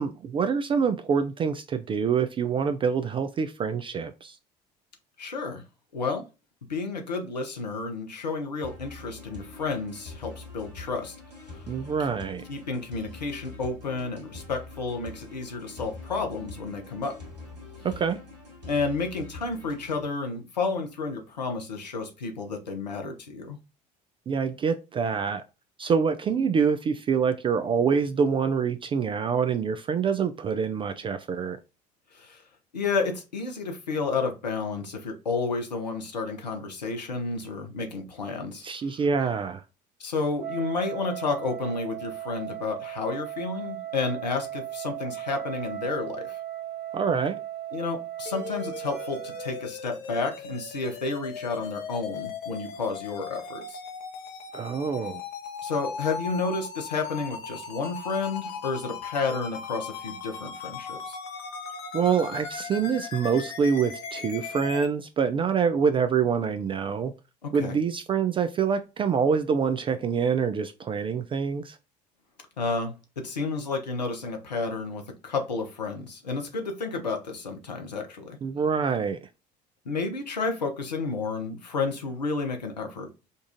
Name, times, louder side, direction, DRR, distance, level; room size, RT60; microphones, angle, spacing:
voice 1, 0.0-4.4 11.7-12.4 17.8-18.2 24.3-25.4 25.8-31.6 38.6-39.6 46.9-47.4 54.5-55.2 61.9-67.1 67.5-71.8 78.4-79.3, right 6 dB, 25° right, 0.3 m, -26 dB
voice 2, 5.2-5.6 5.9-6.3 6.7-11.2 12.5-17.2 18.7-23.6 32.1-32.4 32.7-38.6 38.9-39.0 40.0-46.4 47.7-53.8 55.6-61.2 67.4-67.8 72.6-78.4 79.8-83.1, left 4 dB, 85° left, 0.7 m, -31 dB
sound 1, 8.6-20.0, left 3 dB, 85° right, 1.1 m, -44 dB
Wind instrument woodwind instrument, 40.4-49.7, right 12 dB, 55° right, 1.3 m, -37 dB
sound 2, 48.3-64.9, left 6 dB, 50° left, 0.8 m, -38 dB
5.1 x 2.4 x 2.5 m
figure-of-eight pair, 60°, 21 cm